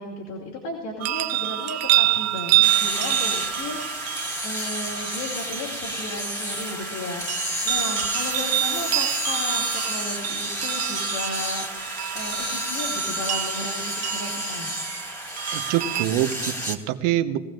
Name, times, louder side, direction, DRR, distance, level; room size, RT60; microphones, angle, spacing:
voice 1, 0.0-11.7 12.1-13.8 14.1-14.7, left 2 dB, 60° left, -4 dB, 2.7 m, -35 dB
sound 1, 1.0-16.1, right 13 dB, 35° right, 0.6 m, -27 dB
sound 2, 2.6-16.8, equal, 10° left, 1.9 m, -30 dB
voice 2, 15.5-17.4, right 12 dB, 60° right, 10 dB, 1.1 m, -25 dB
20.5 x 15.0 x 2.5 m, 1.3 s
hypercardioid pair, 90°, 45 cm